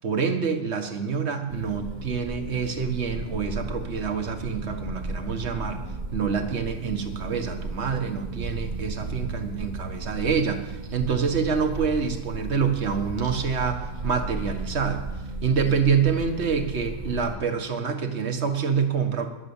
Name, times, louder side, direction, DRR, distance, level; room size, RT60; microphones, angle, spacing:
voice 1, 0.0-5.8 6.1-15.0 15.4-19.3, right 6 dB, 50° right, 6 dB, 1.6 m, -26 dB
sound 1, 1.5-17.4, right 2 dB, 35° right, 1.1 m, -35 dB
21.0 x 7.4 x 7.2 m, 1.1 s
omnidirectional pair, 1.5 m